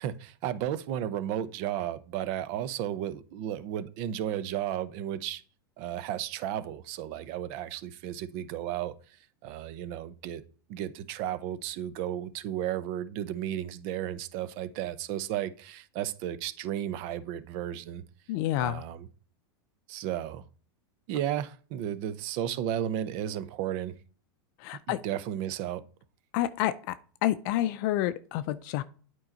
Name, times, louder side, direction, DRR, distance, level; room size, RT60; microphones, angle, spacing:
voice 1, 0.0-5.4 5.8-8.9 9.4-10.4 10.7-18.0 18.6-19.1 19.9-20.4 21.1-23.9 24.9-25.8, right 11 dB, 50° right, 0.8 m, -33 dB
voice 2, 18.3-18.8 24.6-25.0 26.3-26.9 27.2-28.8, left 14 dB, 50° left, 0.5 m, -29 dB
8.7 x 4.6 x 3.9 m
hypercardioid pair, 120°, 13 cm